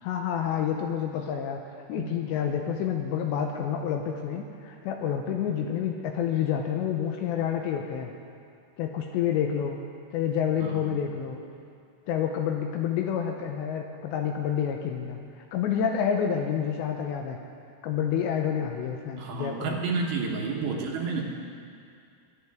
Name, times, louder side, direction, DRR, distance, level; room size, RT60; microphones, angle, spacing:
voice 1, 0.0-1.6 1.9-8.1 8.8-9.8 10.1-11.4 12.1-17.4 17.8-19.8, left 8 dB, 85° left, 3 dB, 2.7 m, -28 dB
voice 2, 1.9-2.3 10.6-10.9 19.2-21.2, right 4 dB, 70° right, 0 dB, 3.0 m, -31 dB
22.5 x 11.0 x 3.5 m, 2.3 s
omnidirectional pair, 5.6 m